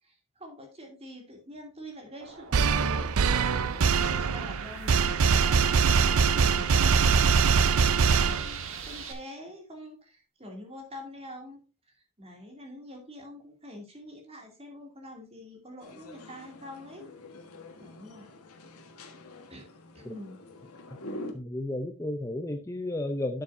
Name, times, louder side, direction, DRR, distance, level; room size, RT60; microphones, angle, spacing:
voice 1, 0.0-3.2 3.4-7.3 7.9-11.6 11.9-17.1 17.8-18.3 19.5-19.7 19.9-20.4, left 1 dB, 25° right, 2.5 m, -45 dB
sound 1, 2.2-9.1, right 5 dB, 65° right, 1.6 m, -43 dB
sound 2, 2.5-8.9, right 5 dB, 80° right, 0.5 m, -23 dB
sound 3, 15.8-21.3, left 1 dB, 85° left, 1.4 m, -45 dB
voice 2, 21.3-23.4, left 1 dB, 15° left, 0.5 m, -33 dB
11.5 x 7.1 x 2.6 m
head